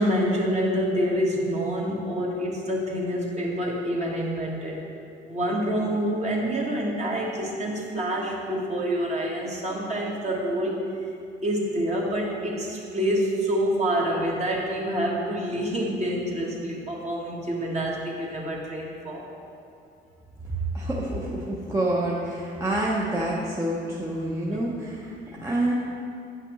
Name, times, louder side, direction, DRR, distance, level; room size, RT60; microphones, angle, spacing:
voice 1, 0.0-4.8 5.2-10.8 11.4-19.3 24.5-24.6 25.3-25.4, equal, 35° right, -3 dB, 1.5 m, -27 dB
voice 2, 20.7-25.1 25.4-25.7, right 1 dB, 15° right, -5 dB, 0.8 m, -27 dB
9.1 x 5.8 x 3.1 m, 2.6 s
cardioid pair, 90°, 20 cm